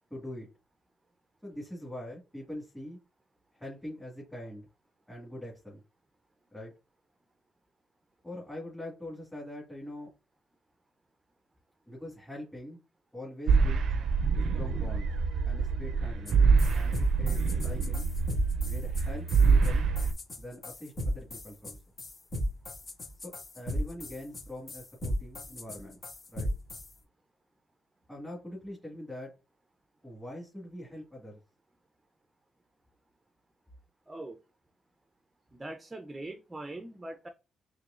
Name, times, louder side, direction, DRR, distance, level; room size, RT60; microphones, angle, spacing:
voice 1, 0.1-0.5 1.4-3.0 3.5-4.7 5.1-5.8 6.5-6.7 8.2-10.1 11.9-12.8 13.1-13.9 14.4-15.1 15.4-16.4 16.7-18.1 18.6-19.9 20.4-21.8 23.2-26.0 26.3-26.5 28.1-29.3 30.0-31.4, left 1 dB, 5° left, 1.8 m, -43 dB
sound 1, 13.5-20.1, right 5 dB, 70° right, 0.5 m, -26 dB
sound 2, 16.2-16.3 16.6-26.9, equal, 40° left, 1.8 m, -35 dB
voice 2, 34.1-34.4 35.5-37.3, right 2 dB, 15° right, 0.6 m, -41 dB
4.6 x 3.1 x 2.5 m
cardioid pair, 90°, 0 cm